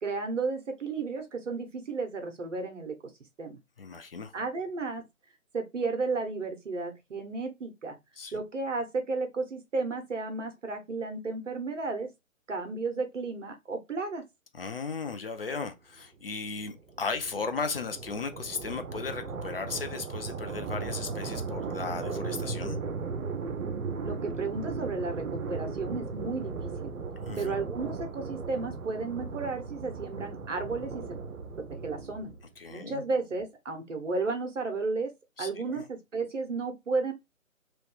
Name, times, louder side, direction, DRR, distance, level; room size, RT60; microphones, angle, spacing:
voice 1, 0.0-3.0 3.4-3.6 4.3-5.0 5.5-8.0 8.3-12.1 12.5-14.2 24.0-26.9 27.4-31.1 31.5-32.3 32.7-35.1 35.4-37.1, right 3 dB, 60° right, 1.2 m, -33 dB
voice 2, 3.8-4.3 8.2-8.4 14.5-22.8 27.3-27.5 32.6-33.0 35.4-35.8, left 4 dB, 45° left, 0.6 m, -36 dB
sound 1, 16.3-32.5, right 4 dB, 90° right, 0.7 m, -37 dB
3.0 x 3.0 x 3.2 m
figure-of-eight pair, 150°, 41 cm